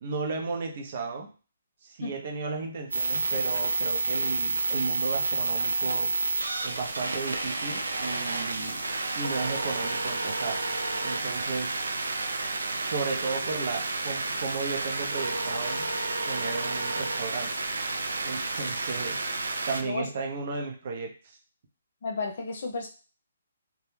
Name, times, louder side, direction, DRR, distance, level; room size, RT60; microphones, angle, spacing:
voice 1, 0.0-1.3 1.8-6.1 6.6-8.8 9.1-10.6 11.0-11.9 12.9-15.9 16.3-19.2 19.7-21.4, right 4 dB, 50° right, 3 dB, 0.6 m, -34 dB
sound 1, 2.9-19.8, right 2 dB, 90° right, 0.4 m, -30 dB
voice 2, 22.0-22.9, left 4 dB, 55° left, 1 dB, 0.7 m, -32 dB
2.2 x 2.1 x 3.2 m, 0.36 s
hypercardioid pair, 145°, 0 cm